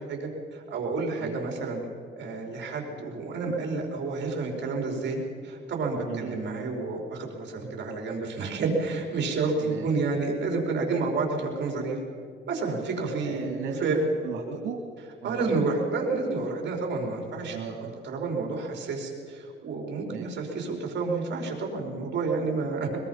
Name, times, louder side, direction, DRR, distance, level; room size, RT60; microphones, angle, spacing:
voice 1, 0.1-1.8 2.2-12.0 12.5-13.5 13.8-14.0 15.2-17.6 18.0-23.0, right 3 dB, 65° right, 1 dB, 5.0 m, -30 dB
voice 2, 6.0-6.4 9.6-10.2 13.2-14.8 15.2-15.7 17.5-17.9 20.1-20.2, right 6 dB, 90° right, 0 dB, 2.4 m, -36 dB
22.5 x 22.0 x 5.8 m, 2.1 s
cardioid pair, 90°, 20 cm